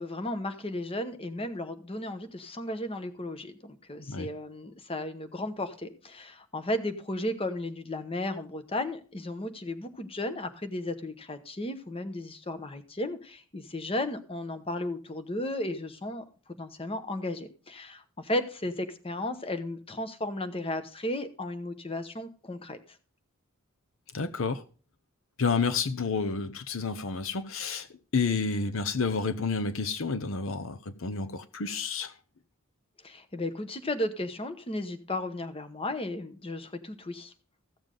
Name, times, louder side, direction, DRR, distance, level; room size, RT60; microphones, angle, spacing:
voice 1, 0.0-16.2 16.6-22.8 33.0-37.3, left 1 dB, 25° left, 1.1 m, -34 dB
voice 2, 24.1-24.6 25.4-27.9 28.1-32.1, left 4 dB, 65° left, 0.8 m, -30 dB
15.0 x 7.1 x 3.8 m
head